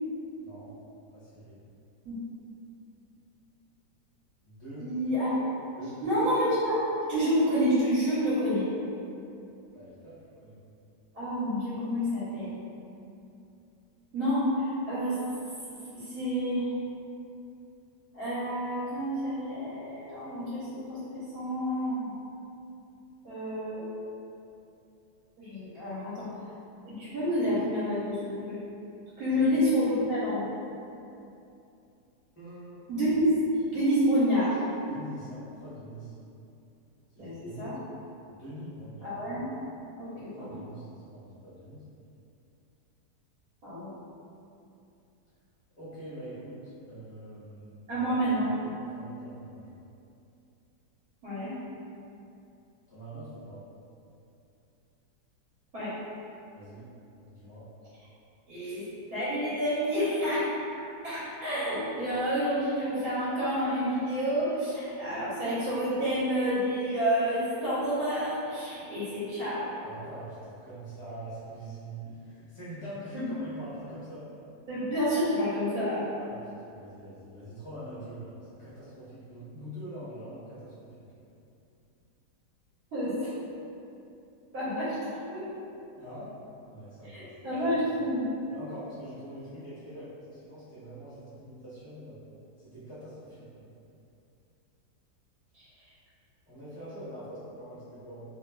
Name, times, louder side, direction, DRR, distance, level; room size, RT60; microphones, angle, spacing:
voice 1, 1.1-1.6 4.4-4.9 5.8-6.2 9.7-10.1 10.4-10.6 29.3-29.4 32.4-32.8 34.9-36.1 37.1-37.7 38.3-39.1 40.0-41.8 45.8-49.8 52.9-53.6 56.5-56.8 57.3-57.6 69.8-74.3 76.2-80.9 85.9-86.3 86.6-87.3 87.6-87.7 88.5-92.2 92.6-93.6 96.5-98.2, right 1 dB, 30° left, -12 dB, 0.5 m, -44 dB
voice 2, 4.8-5.5 6.0-8.7 11.1-12.6 14.1-15.2 15.9-16.7 18.1-22.1 23.2-23.9 25.4-26.3 26.8-28.6 29.2-30.4 32.9-33.2 33.7-34.6 37.2-37.8 39.0-39.5 39.9-40.6 43.6-43.9 47.9-48.5 51.2-51.5 55.7-55.9 58.5-58.8 59.1-60.6 61.0-69.8 73.1-73.3 74.7-76.1 82.9-83.3 84.5-85.0 85.3-85.5 87.0-88.2, equal, 65° right, -12 dB, 1.2 m, -29 dB
3.2 x 2.3 x 2.2 m, 2.7 s
omnidirectional pair, 1.8 m